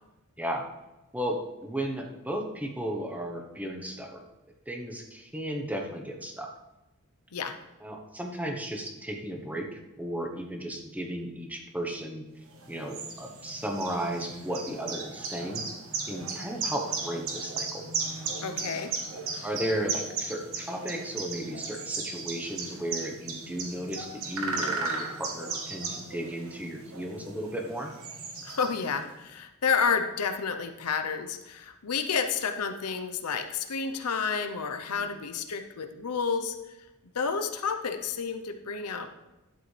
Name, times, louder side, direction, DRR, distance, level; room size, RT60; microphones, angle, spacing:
voice 1, 1.1-4.2 4.7-6.5 7.8-12.3 12.7-15.6 16.1-17.9 19.4-27.9 34.9-35.2, right 1 dB, 5° right, 2 dB, 1.0 m, -34 dB
sound 1, 12.5-29.1, right 4 dB, 65° right, 1.3 m, -36 dB
voice 2, 18.4-18.9 28.4-36.6 37.1-39.3, left 5 dB, 90° left, 7 dB, 0.8 m, -30 dB
11.5 x 7.7 x 3.3 m, 1.0 s
head